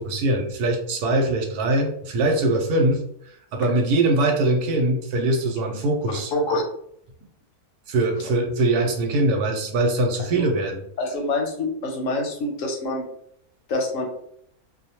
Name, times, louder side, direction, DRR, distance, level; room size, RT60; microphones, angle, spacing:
voice 1, 0.0-6.3 7.9-10.8, right 2 dB, 90° right, 3 dB, 1.2 m, -22 dB
voice 2, 6.3-6.6 10.3-10.5 11.0-13.0 13.7-14.1, left 2 dB, 65° left, 1 dB, 0.9 m, -26 dB
2.5 x 2.1 x 2.8 m, 0.69 s
omnidirectional pair, 1.6 m